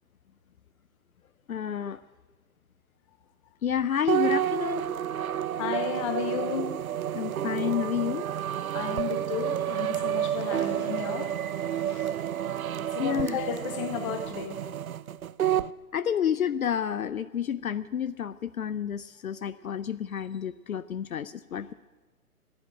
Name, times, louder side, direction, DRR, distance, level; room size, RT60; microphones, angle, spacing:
voice 1, 1.5-2.0 3.6-4.8 7.1-8.2 13.0-13.4 15.9-21.7, left 9 dB, 65° left, 16 dB, 0.6 m, -30 dB
sound 1, 4.1-15.7, right 10 dB, 65° right, 0.6 m, -30 dB
voice 2, 5.5-6.7 8.7-12.1 12.9-14.6, left 8 dB, 20° left, 8 dB, 1.2 m, -34 dB
14.5 x 10.5 x 8.8 m, 1.2 s
figure-of-eight pair, 135°, 45 cm